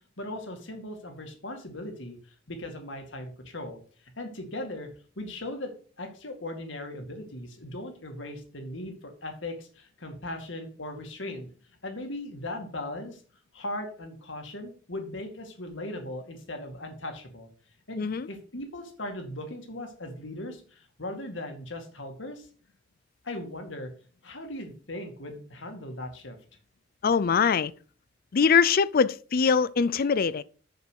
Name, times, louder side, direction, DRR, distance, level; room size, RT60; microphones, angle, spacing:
voice 1, 0.2-2.2 2.5-3.8 4.2-4.9 5.2-5.7 6.0-11.5 11.8-13.2 13.5-17.5 17.9-22.5 23.2-23.9 24.2-26.4, left 1 dB, 65° left, 2.2 m, -38 dB
voice 2, 18.0-18.3 27.0-27.7 28.3-30.4, left 6 dB, 50° left, 0.4 m, -22 dB
6.9 x 6.7 x 6.3 m
head